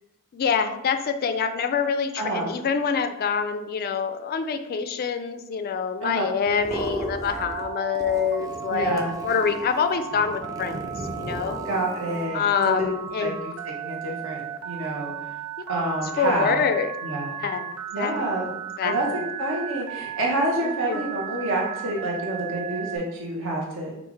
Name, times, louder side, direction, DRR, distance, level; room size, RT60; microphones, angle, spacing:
voice 1, 0.3-11.6 12.3-13.4 16.2-16.9 17.4-19.3 20.6-21.0, left 6 dB, 45° left, 9 dB, 0.3 m, -26 dB
voice 2, 2.2-2.5 6.0-6.2 8.7-9.1 11.6-12.4 12.8-12.9 13.2-13.3 13.8-15.3 15.7-16.6 17.0-17.3 17.9-18.5 18.8-19.1 19.4-24.0, right 2 dB, 65° right, -1 dB, 1.2 m, -28 dB
sound 1, 6.5-7.7 7.9-12.3, equal, 15° right, 0.5 m, -36 dB
Telephone, 7.3-23.0, right 9 dB, 85° right, 0.6 m, -35 dB
5.5 x 2.5 x 3.2 m, 0.87 s
head